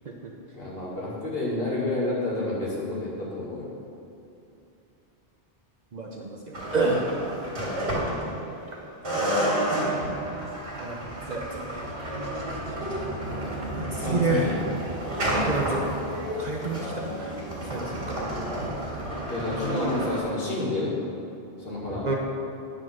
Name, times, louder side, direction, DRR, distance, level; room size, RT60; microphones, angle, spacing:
voice 1, 0.5-3.7 7.5-7.9 14.0-14.6 15.2-15.5 19.3-20.9 21.6-22.1, left 2 dB, 55° left, -6 dB, 1.9 m, -30 dB
voice 2, 5.9-7.1 10.7-11.9 12.3-12.7 13.4-14.6 15.5-15.8 16.4-18.2 19.6-20.1 22.0-22.2, right 3 dB, 45° right, -1 dB, 0.7 m, -30 dB
sound 1, 6.5-8.7 9.0-20.2, right 1 dB, 65° right, 2.4 m, -30 dB
9.7 x 3.8 x 6.1 m, 2.8 s
omnidirectional pair, 1.2 m